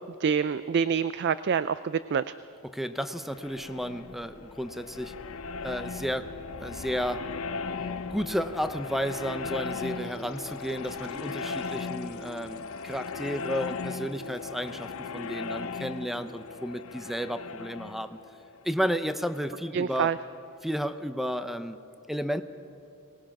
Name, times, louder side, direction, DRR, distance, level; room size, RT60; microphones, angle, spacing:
voice 1, 0.0-2.3 19.7-20.2, right 7 dB, 50° right, 15 dB, 0.4 m, -27 dB
voice 2, 2.6-5.2 5.6-6.3 6.6-7.3 8.1-18.2 18.6-20.1 20.6-21.8 22.1-22.4, equal, ahead, 11 dB, 0.6 m, -32 dB
sound 1, 3.0-19.6, left 4 dB, 75° left, 0.7 m, -38 dB
24.0 x 19.5 x 5.9 m, 2.7 s
head